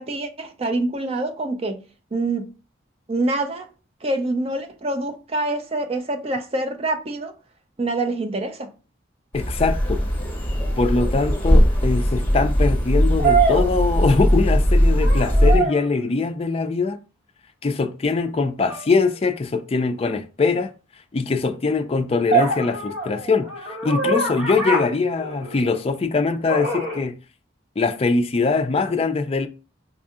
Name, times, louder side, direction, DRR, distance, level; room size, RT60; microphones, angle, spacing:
voice 1, 0.0-1.8 2.1-2.5 3.1-3.7 4.0-7.3 7.8-8.7, right 2 dB, 30° right, 0.5 m, -26 dB
voice 2, 9.3-10.0 10.8-17.0 17.6-20.7 21.1-27.1 27.8-29.5, left 4 dB, 30° left, 0.3 m, -22 dB
sound 1, 9.3-15.6, equal, 5° left, 1.5 m, -19 dB
sound 2, 10.8-10.9 13.2-14.5 14.9-15.9 18.6-18.9 22.3-25.8 26.5-27.0, right 3 dB, 75° right, 1.4 m, -24 dB
5.3 x 2.6 x 2.4 m
head